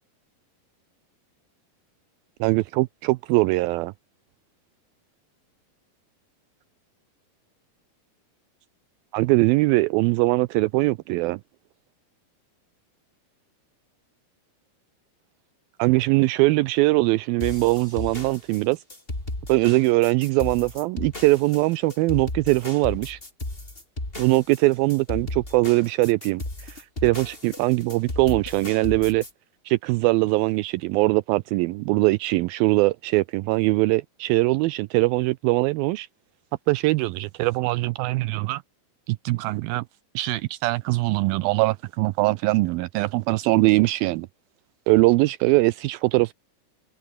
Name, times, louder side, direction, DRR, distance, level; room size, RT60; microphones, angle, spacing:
voice 1, 2.4-3.9 9.1-11.4 15.8-18.8 19.5-23.2 24.2-29.2 29.7-36.1 36.7-38.6 39.1-39.8 40.2-44.3 44.9-46.3, right 21 dB, 85° right, 2.1 m, -22 dB
sound 1, 17.4-29.3, left 2 dB, 15° left, 4.8 m, -35 dB
omnidirectional pair, 4.7 m